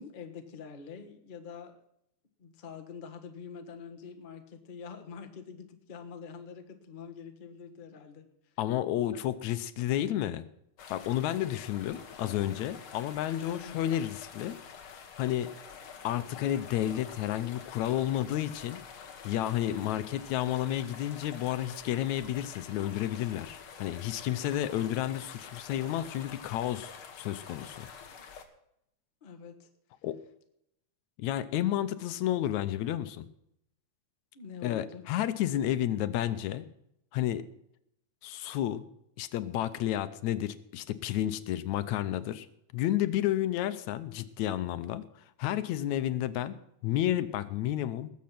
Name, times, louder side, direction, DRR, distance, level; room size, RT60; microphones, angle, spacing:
voice 1, 0.0-1.8 2.4-8.3 9.1-9.2 13.4-13.8 29.2-29.7 34.3-35.0, left 6 dB, 30° left, 5 dB, 0.9 m, -45 dB
voice 2, 8.6-10.5 10.9-15.5 16.0-18.8 19.2-27.9 30.0-30.2 31.2-33.3 34.6-36.7 37.1-37.4 38.2-38.8 39.2-42.5 42.7-48.1, left 12 dB, 80° left, 13 dB, 2.1 m, -31 dB
sound 1, 10.8-28.4, left 6 dB, 50° left, 2.1 m, -48 dB
19.5 x 7.6 x 5.9 m, 0.78 s
omnidirectional pair, 3.4 m